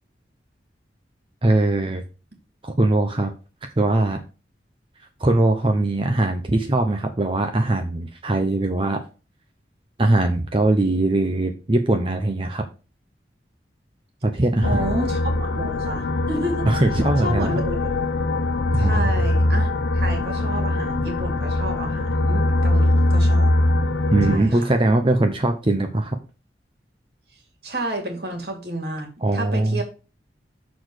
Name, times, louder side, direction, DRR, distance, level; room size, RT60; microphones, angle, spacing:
voice 1, 1.4-2.0 2.6-3.3 3.8-4.2 5.2-9.0 10.0-12.6 14.2-14.9 16.7-17.5 18.8-19.1 24.1-26.2 29.2-29.8, right 2 dB, 30° right, 5 dB, 0.7 m, -21 dB
sound 1, 14.6-24.4, left 1 dB, 75° left, 0.7 m, -22 dB
voice 2, 14.6-16.7 17.2-17.8 18.8-19.7 19.9-23.5 24.3-24.7 27.6-29.8, right 1 dB, 60° right, 3 dB, 2.4 m, -30 dB
6.9 x 4.0 x 6.4 m, 0.33 s
head